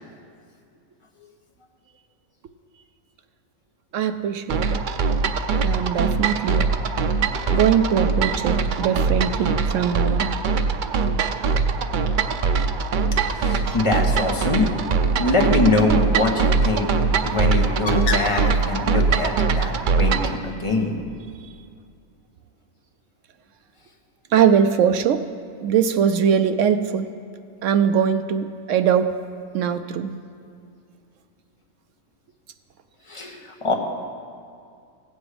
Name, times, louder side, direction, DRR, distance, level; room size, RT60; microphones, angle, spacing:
voice 1, 3.9-4.8 5.6-6.7 7.5-10.3 24.3-25.2 25.6-27.1 27.6-29.2 29.5-30.1, right 8 dB, 70° right, 10 dB, 0.8 m, -21 dB
sound 1, 4.5-20.4, right 5 dB, 85° right, 0.4 m, -22 dB
Bird, 13.1-19.2, left 3 dB, 70° left, 1.3 m, -36 dB
voice 2, 13.3-14.7 15.2-20.9 33.1-33.7, left 2 dB, 25° left, 1 dB, 1.1 m, -23 dB
16.5 x 7.9 x 5.0 m, 2.3 s
omnidirectional pair, 1.5 m